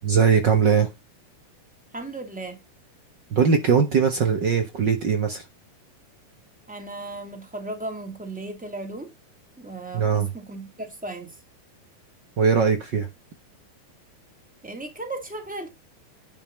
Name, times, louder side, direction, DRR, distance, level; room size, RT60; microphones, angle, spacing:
voice 1, 0.0-0.9 3.3-5.4 9.9-10.3 12.4-13.1, right 6 dB, 80° right, 1.0 m, -20 dB
voice 2, 1.9-2.6 6.7-9.1 9.6-11.3 14.6-15.7, right 2 dB, 5° right, 1.9 m, -36 dB
11.0 x 5.7 x 5.3 m
omnidirectional pair, 4.4 m